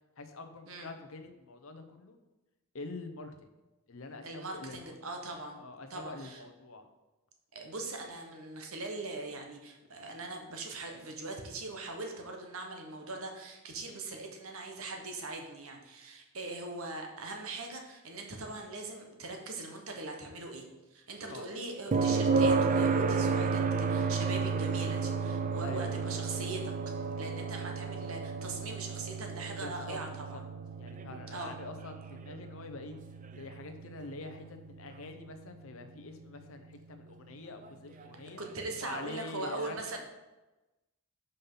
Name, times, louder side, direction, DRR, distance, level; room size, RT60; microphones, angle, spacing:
voice 1, 0.2-2.2 2.7-3.5 3.9-5.0 5.6-6.9 21.3-21.5 25.6-25.9 29.6-30.0 30.3-30.4 30.7-33.0 33.3-38.4 38.8-40.0, left 3 dB, 65° left, 7 dB, 0.8 m, -45 dB
voice 2, 4.2-5.6 5.9-6.4 7.5-20.6 20.9-30.4 31.3-31.5 38.4-40.0, right 2 dB, 70° right, 3 dB, 1.2 m, -41 dB
sound 1, 21.9-35.8 38.0-38.1, right 4 dB, 35° right, 0.4 m, -32 dB
5.5 x 5.3 x 5.6 m, 1.1 s
head